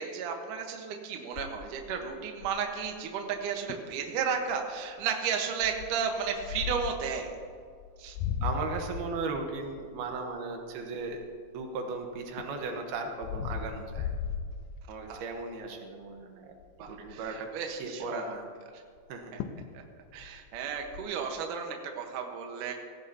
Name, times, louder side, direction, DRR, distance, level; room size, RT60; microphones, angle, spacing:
voice 1, 0.0-7.3 8.0-8.2 15.1-15.2 16.8-18.3 18.7-18.8 19.3-19.4 19.7-19.8 20.1-22.7, right 6 dB, 65° right, 3 dB, 2.6 m, -33 dB
sound 1, 1.4-2.8 3.4-3.5 3.7-4.0 4.5-4.8 5.6-7.1 7.8-11.7 12.1-15.2 15.6-15.9 16.2-16.3 16.6-17.3 19.0-19.1 19.4-19.7 20.0-21.0, left 7 dB, 85° left, 2.7 m, -37 dB
voice 2, 8.4-11.2 11.5-14.1 14.9-16.5 16.9-17.5 17.8-18.5 19.1-19.3, right 4 dB, 85° right, 3 dB, 3.1 m, -36 dB
17.5 x 16.0 x 2.8 m, 2.1 s
omnidirectional pair, 4.4 m